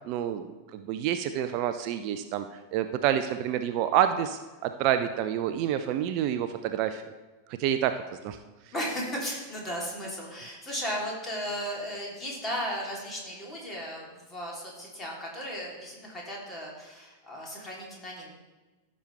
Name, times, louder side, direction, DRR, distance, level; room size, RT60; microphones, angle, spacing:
voice 1, 0.0-7.0 7.6-8.4, right 10 dB, 45° right, 9 dB, 0.5 m, -28 dB
voice 2, 8.7-18.3, equal, 20° left, -3 dB, 3.0 m, -35 dB
15.0 x 6.3 x 3.3 m, 1.2 s
figure-of-eight pair, 90°, 0 cm